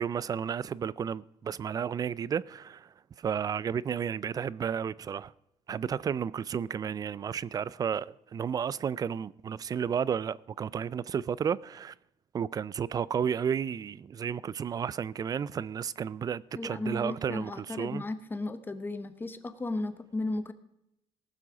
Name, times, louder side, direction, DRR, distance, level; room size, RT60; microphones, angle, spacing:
voice 1, 0.0-2.9 3.2-5.3 5.7-11.9 12.3-18.0, right 7 dB, 35° right, 0.4 m, -32 dB
voice 2, 16.5-20.5, left 2 dB, 15° left, 1.0 m, -35 dB
18.5 x 7.5 x 4.9 m
cardioid pair, 125°, 12 cm